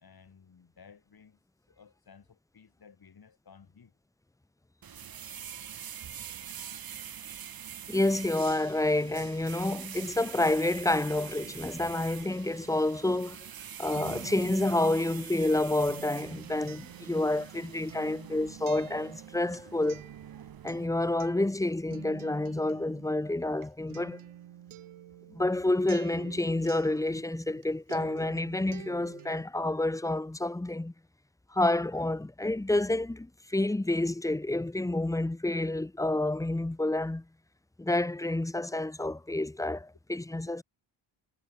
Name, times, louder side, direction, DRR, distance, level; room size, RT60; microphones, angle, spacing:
voice 1, 0.0-1.4 1.7-3.9 7.1-7.2, left 6 dB, 50° left, 6.3 m, -56 dB
sound 1, 4.8-20.9, right 8 dB, 45° right, 1.2 m, -45 dB
voice 2, 7.9-13.4 13.8-20.0 20.6-24.2 25.3-30.9 31.5-37.2 37.8-40.6, left 2 dB, 5° left, 0.7 m, -29 dB
Acoustic guitar, 13.4-27.6 27.9-29.4, right 11 dB, 90° right, 2.9 m, -49 dB
cardioid pair, 95°, 48 cm